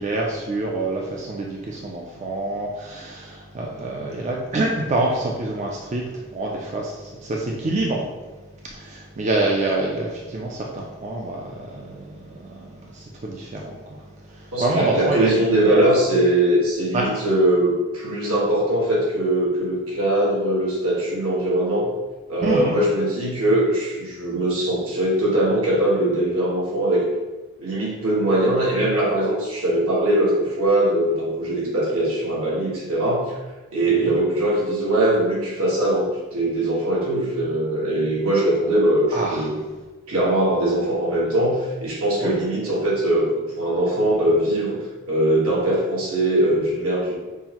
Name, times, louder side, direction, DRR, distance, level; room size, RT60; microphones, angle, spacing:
voice 1, 0.0-8.0 8.6-15.3 15.7-15.8 16.9-17.1 22.4-22.8 33.9-34.1 39.1-39.5 42.2-42.4, right 2 dB, 30° right, -1 dB, 0.3 m, -27 dB
voice 2, 14.5-21.9 22.3-27.0 27.6-33.4 33.7-39.6 40.1-43.3 43.5-44.8 45.1-47.2, right 1 dB, 80° right, -5 dB, 1.3 m, -21 dB
5.4 x 2.0 x 2.9 m, 1.2 s
head